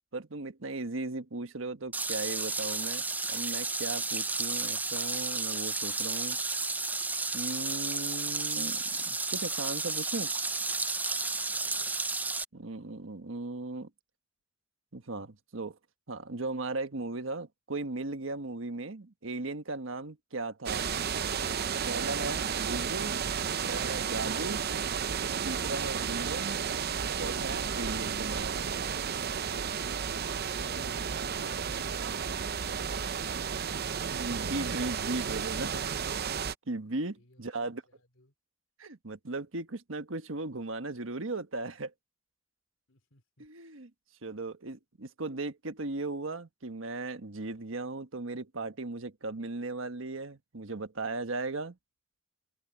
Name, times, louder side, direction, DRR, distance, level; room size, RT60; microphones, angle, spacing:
voice 1, 0.1-3.0 3.3-6.4 7.3-10.3 12.5-13.9 14.9-15.8 16.1-20.8 21.5-21.6 21.9-23.1 23.4-24.6 25.4-26.6 27.2-28.5 34.1-36.0 36.7-37.8 38.8-41.9 43.4-43.9 44.2-51.8, right 2 dB, 85° right, 1.4 m, -37 dB
sound 1, 1.9-12.4, right 3 dB, 10° right, 0.4 m, -32 dB
voice 2, 11.5-12.0 30.6-32.3 32.7-33.3 37.2-38.3 42.9-43.5, left 2 dB, 90° left, 3.4 m, -59 dB
sound 2, 20.7-36.5, right 7 dB, 55° right, 0.7 m, -32 dB
head